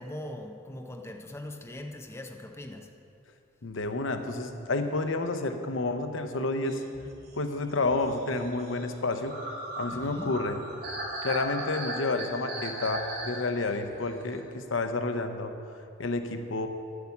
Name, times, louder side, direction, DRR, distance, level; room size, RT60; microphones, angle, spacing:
voice 1, 0.0-2.9 9.9-10.3, left 1 dB, 15° left, 3 dB, 0.6 m, -40 dB
voice 2, 3.6-6.8 7.3-9.3 9.8-10.6 11.2-15.5 16.0-16.7, left 3 dB, 75° left, 7 dB, 0.8 m, -30 dB
sound 1, 6.7-14.4, right 1 dB, 50° right, 2.5 m, -38 dB
9.8 x 8.3 x 7.1 m, 2.6 s
head